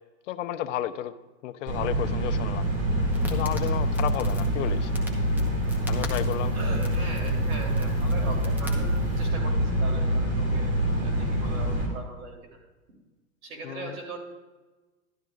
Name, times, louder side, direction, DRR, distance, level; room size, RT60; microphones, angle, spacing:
voice 1, 0.3-1.1 1.4-2.7 3.3-4.9 5.9-6.6 13.6-14.0, left 12 dB, 60° left, 11 dB, 0.7 m, -32 dB
sound 1, 1.7-11.9, right 1 dB, 25° right, 2.2 m, -26 dB
Crackle, 2.6-9.3, left 1 dB, 5° right, 0.9 m, -39 dB
voice 2, 6.5-8.9 9.2-10.7 11.0-12.3 13.4-14.2, right 3 dB, 75° right, 1 dB, 3.2 m, -39 dB
12.0 x 12.0 x 2.4 m, 1.2 s
hypercardioid pair, 140°, 43 cm